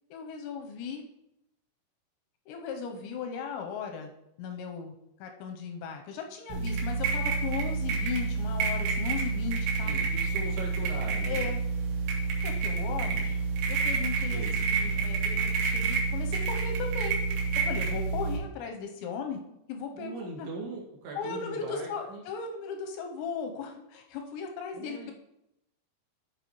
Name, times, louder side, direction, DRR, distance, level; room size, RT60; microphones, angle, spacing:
voice 1, 0.1-1.0 2.5-4.1 4.4-4.9 5.2-9.9 11.3-11.6 12.4-13.4 13.7-17.2 17.6-19.4 19.7-20.5 21.2-25.1, left 5 dB, 80° left, 4 dB, 2.7 m, -37 dB
sound 1, 6.5-18.4, right 4 dB, 80° right, 4.1 m, -29 dB
voice 2, 9.8-11.5 13.1-13.3 14.3-14.6 19.9-22.2 24.7-25.1, right 2 dB, 60° right, -3 dB, 3.6 m, -40 dB
13.5 x 5.5 x 3.1 m, 0.83 s
omnidirectional pair, 5.8 m